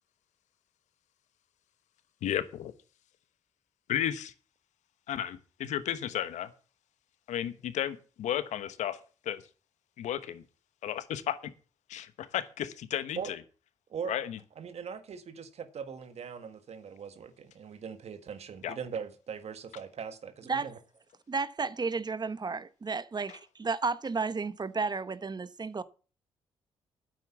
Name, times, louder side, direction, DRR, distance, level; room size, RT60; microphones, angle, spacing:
voice 1, 2.2-2.7 3.9-4.3 5.1-6.5 7.3-9.4 10.0-10.4 10.8-11.5 11.9-13.4 14.1-14.4 18.6-18.8 23.3-23.4, left 11 dB, 75° left, 1.1 m, -33 dB
voice 2, 13.9-14.3 14.6-20.8, right 6 dB, 60° right, 1.7 m, -40 dB
voice 3, 21.3-25.8, right 4 dB, 35° right, 1.0 m, -32 dB
9.4 x 8.0 x 7.1 m
supercardioid pair, 55°, 12 cm